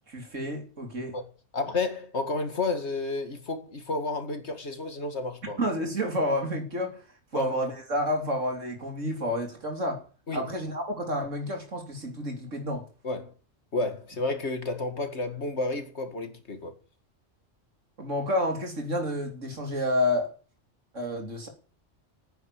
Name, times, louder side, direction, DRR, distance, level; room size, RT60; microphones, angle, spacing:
voice 1, 0.1-1.2 5.6-7.0 7.3-10.0 10.3-12.8 18.0-20.3 20.9-21.5, left 1 dB, 85° right, 3.6 m, -29 dB
voice 2, 1.5-5.6 7.3-7.6 10.3-10.4 13.0-13.3 13.7-16.7, left 3 dB, 65° left, 2.3 m, -31 dB
10.5 x 9.6 x 8.4 m
omnidirectional pair, 1.3 m